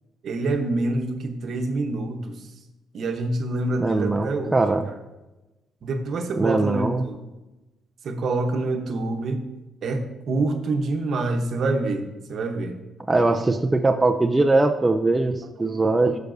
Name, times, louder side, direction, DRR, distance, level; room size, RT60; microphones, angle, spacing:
voice 1, 0.2-2.3 2.9-4.6 5.8-7.2 8.0-9.4 9.8-12.8 13.1-13.5 15.6-15.8, right 2 dB, 60° right, 6 dB, 1.0 m, -26 dB
voice 2, 3.8-4.9 6.4-7.0 13.1-16.2, right 2 dB, 20° right, 6 dB, 0.5 m, -21 dB
11.5 x 6.6 x 2.6 m, 1.1 s
cardioid pair, 90°, 0 cm